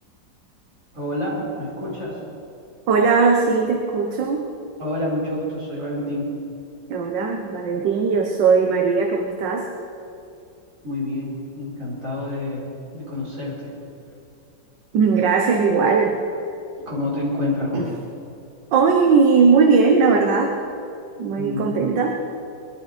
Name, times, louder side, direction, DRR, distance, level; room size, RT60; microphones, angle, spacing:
voice 1, 0.9-2.2 4.8-6.3 10.8-12.6 12.9-13.7 16.9-17.9 21.4-21.8, left 1 dB, 40° right, -6 dB, 4.9 m, -28 dB
voice 2, 2.9-4.5 6.9-9.7 14.9-16.2 17.7-17.9 18.7-20.5 21.2-22.1, right 5 dB, 70° right, 2 dB, 1.7 m, -18 dB
21.5 x 12.0 x 5.0 m, 2.7 s
omnidirectional pair, 2.0 m